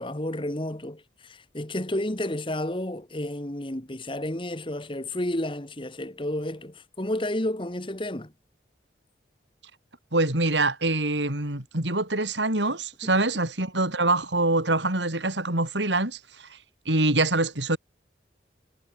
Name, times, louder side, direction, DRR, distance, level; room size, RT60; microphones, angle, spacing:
voice 1, 0.0-8.3, left 1 dB, 30° left, 1.7 m, -31 dB
voice 2, 10.1-16.5 16.9-17.8, right 2 dB, 85° right, 5.6 m, -25 dB
head